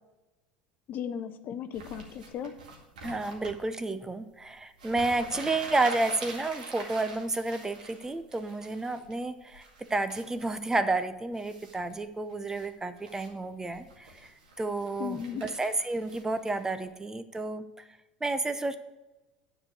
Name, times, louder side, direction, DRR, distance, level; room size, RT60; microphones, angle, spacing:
voice 1, 0.9-2.5 15.0-15.4, left 8 dB, 45° left, 10 dB, 0.7 m, -36 dB
sound 1, 1.7-3.6 4.5-4.6 4.7-9.1 9.5-10.5 11.3-11.9 12.3-12.7 13.0-13.3 13.7-16.8, right 3 dB, 75° right, 2.1 m, -45 dB
voice 2, 3.0-14.3 14.6-17.7 18.2-18.8, right 2 dB, 15° right, 11 dB, 0.7 m, -31 dB
9.8 x 4.8 x 8.0 m, 1.1 s
hypercardioid pair, 75°, 4 cm